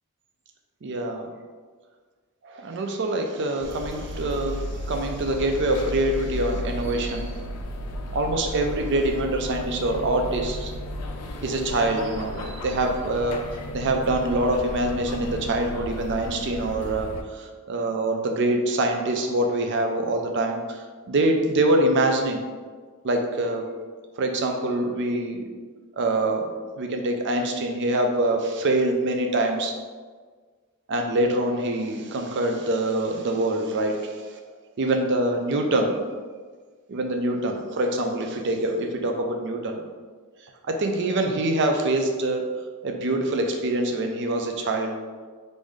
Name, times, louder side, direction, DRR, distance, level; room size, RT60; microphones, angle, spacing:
voice 1, 0.8-1.3 2.4-7.3 8.1-10.7 11.4-13.5 13.7-22.4 23.0-23.7 24.2-25.4 26.0-29.7 30.9-34.3 34.8-36.0 36.9-39.8 40.7-42.5 42.8-45.0, right 1 dB, 55° right, 3 dB, 0.4 m, -25 dB
sound 1, 3.6-17.2, left 1 dB, 85° left, 0.4 m, -34 dB
3.7 x 2.6 x 3.2 m, 1.5 s
head